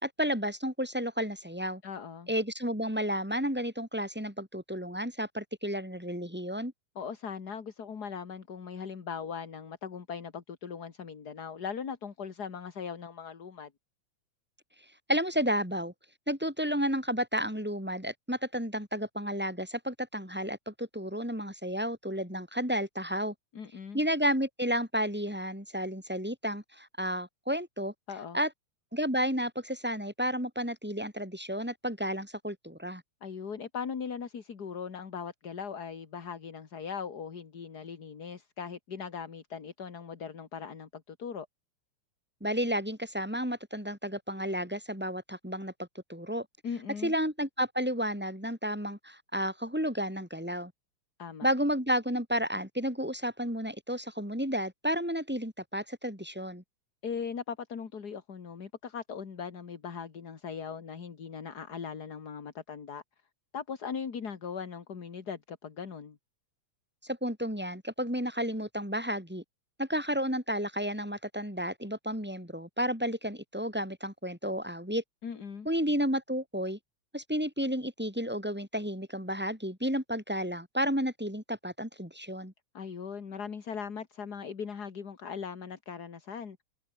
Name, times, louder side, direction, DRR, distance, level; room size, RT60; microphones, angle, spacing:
voice 1, 0.0-1.8 2.3-6.7 15.1-15.9 16.3-23.3 23.9-27.9 28.3-28.5 28.9-33.0 42.4-46.5 47.0-50.7 51.4-56.6 67.0-69.4 69.8-75.0 75.6-76.8 77.1-82.5, equal, 5° right, 6.0 m, -32 dB
voice 2, 1.8-2.3 7.0-13.7 23.5-24.0 28.1-28.4 33.2-41.5 46.6-47.1 51.2-51.5 57.0-63.0 63.5-66.2 75.2-75.7 82.7-86.6, left 6 dB, 35° left, 2.0 m, -39 dB
omnidirectional pair, 3.3 m